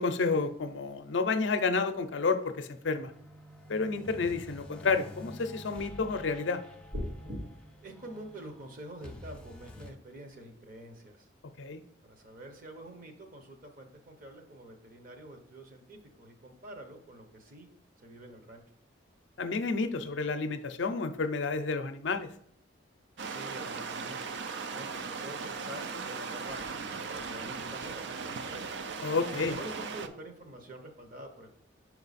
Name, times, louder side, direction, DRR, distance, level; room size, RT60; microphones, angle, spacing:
voice 1, 0.0-3.1 3.7-6.6 11.6-11.8 19.4-22.3 29.0-29.6, left 4 dB, 65° left, 8 dB, 0.5 m, -30 dB
sound 1, 2.8-9.9, left 1 dB, 5° left, 0.4 m, -49 dB
sound 2, 6.9-7.4, equal, 85° right, 2.2 m, -35 dB
voice 2, 7.8-11.3 12.1-17.7 18.0-18.6 23.2-28.6 29.3-31.6, right 1 dB, 45° right, 5 dB, 0.9 m, -47 dB
sound 3, 23.2-30.1, right 5 dB, 60° right, 0.4 m, -38 dB
5.5 x 4.6 x 4.0 m, 0.66 s
head